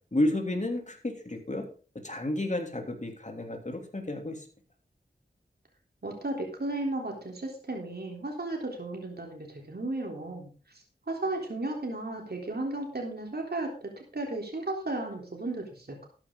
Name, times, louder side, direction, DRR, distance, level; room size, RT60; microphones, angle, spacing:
voice 1, 0.1-1.6 2.0-4.4, left 1 dB, 40° left, 4 dB, 3.1 m, -31 dB
voice 2, 6.0-16.1, right 2 dB, 60° right, 0 dB, 3.6 m, -35 dB
13.0 x 9.9 x 3.9 m, 0.38 s
wide cardioid pair, 40°, 18 cm